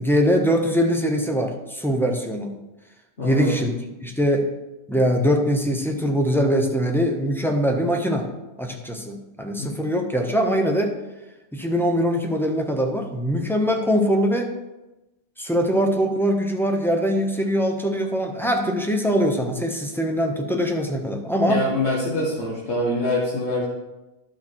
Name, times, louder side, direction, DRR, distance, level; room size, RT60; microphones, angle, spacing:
voice 1, 0.0-2.6 3.2-3.7 4.0-4.5 4.9-8.3 8.6-10.9 11.5-14.5 15.4-21.6, equal, ahead, 2 dB, 0.9 m, -22 dB
voice 2, 3.2-3.6 9.6-9.7 21.5-23.6, left 1 dB, 70° left, -6 dB, 1.9 m, -24 dB
11.5 x 6.0 x 4.5 m, 1.0 s
omnidirectional pair, 1.2 m